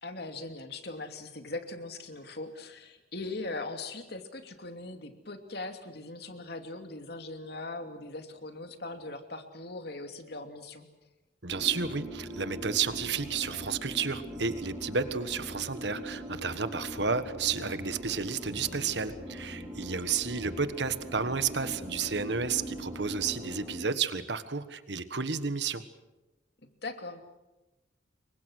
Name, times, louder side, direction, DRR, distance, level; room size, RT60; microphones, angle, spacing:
voice 1, 0.0-10.9 19.9-20.2 26.8-27.2, left 2 dB, 60° left, 6 dB, 2.8 m, -40 dB
voice 2, 11.4-25.8, right 5 dB, 70° right, 11 dB, 1.5 m, -31 dB
sound 1, 11.5-23.8, equal, 25° right, 7.3 m, -41 dB
29.0 x 24.0 x 6.4 m, 1.0 s
head